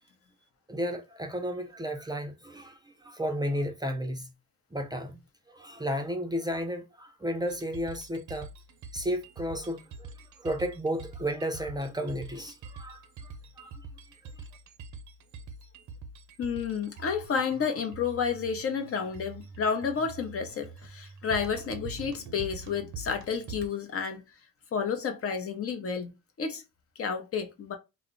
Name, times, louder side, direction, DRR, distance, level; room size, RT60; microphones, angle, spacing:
voice 1, 0.7-4.3 4.7-5.2 5.5-8.5 8.9-10.1 10.4-13.3 13.6-13.8 14.4-14.5, equal, 15° right, 0.4 m, -33 dB
sound 1, 7.5-23.7, right 4 dB, 70° right, 0.6 m, -45 dB
voice 2, 16.4-24.2 24.7-26.1 26.4-26.6 27.0-27.8, left 6 dB, 50° left, 0.7 m, -31 dB
2.3 x 2.0 x 3.7 m
cardioid pair, 90°, 30 cm